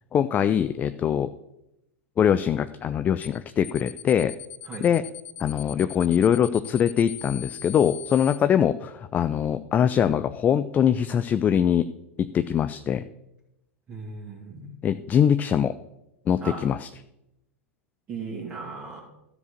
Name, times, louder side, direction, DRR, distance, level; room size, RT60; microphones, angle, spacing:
voice 1, 0.1-1.3 2.2-4.3 4.8-5.0 5.4-11.9 12.2-13.0 14.8-15.7 16.3-16.9, left 8 dB, 20° left, 12 dB, 0.4 m, -22 dB
sound 1, 3.2-3.4 3.6-8.4, left 10 dB, 65° left, 0.7 m, -40 dB
voice 2, 13.9-14.7 16.4-16.6 18.1-19.0, right 4 dB, 25° right, -5 dB, 2.4 m, -36 dB
13.0 x 5.0 x 6.6 m, 0.88 s
figure-of-eight pair, 95°, 7 cm